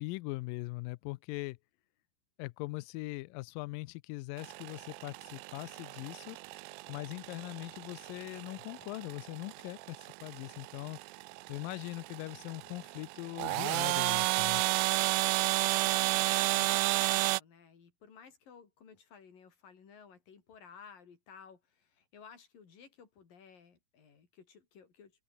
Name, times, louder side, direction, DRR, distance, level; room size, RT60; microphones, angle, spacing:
voice 1, 0.0-1.6 2.4-6.4 6.9-11.0 11.5-14.6, left 22 dB, 85° left, 2.0 m, -41 dB
sound 1, 4.4-17.4, right 21 dB, 80° right, 2.3 m, -32 dB
voice 2, 15.7-25.1, left 6 dB, 60° left, 5.6 m, -56 dB
omnidirectional pair, 4.4 m